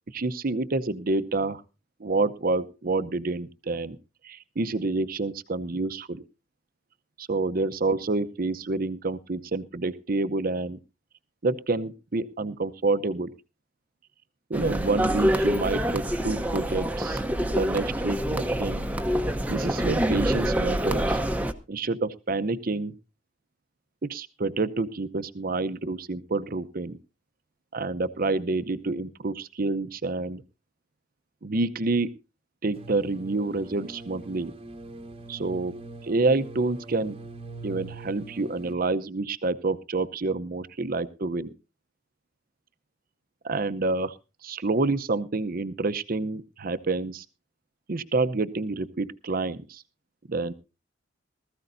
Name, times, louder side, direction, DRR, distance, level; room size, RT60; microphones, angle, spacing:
voice 1, 0.1-1.6 2.0-4.0 4.2-6.2 7.2-10.8 11.4-13.3 14.5-17.2 17.5-18.9 19.5-21.2 21.7-22.9 24.0-27.0 27.7-30.4 31.4-32.1 32.6-34.5 35.3-37.2 37.6-41.5 43.4-44.2 44.4-47.2 47.9-49.8 50.3-50.5, right 3 dB, 50° right, 13 dB, 0.7 m, -28 dB
sound 1, 14.5-21.5, equal, 10° right, 0.9 m, -26 dB
sound 2, 32.8-38.7, right 3 dB, 30° right, 1.1 m, -43 dB
19.5 x 14.0 x 2.6 m, 0.30 s
head